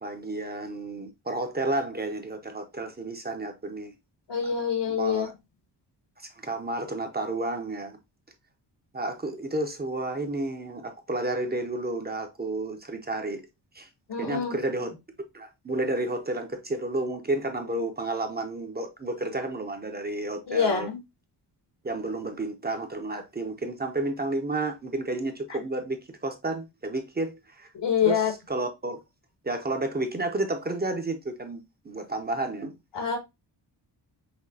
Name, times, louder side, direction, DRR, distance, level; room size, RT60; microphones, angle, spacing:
voice 1, 0.0-3.9 4.9-5.3 6.2-8.0 8.9-13.4 13.7-13.9 14.2-14.9 15.3-20.9 21.8-27.7 28.0-29.0 29.4-32.7, right 2 dB, 25° right, 0.5 m, -31 dB
voice 2, 4.3-5.3 14.1-14.5 20.5-21.0 27.7-28.3 32.9-33.2, left 7 dB, 80° left, 1.5 m, -25 dB
5.8 x 2.7 x 2.7 m
wide cardioid pair, 170°, 42 cm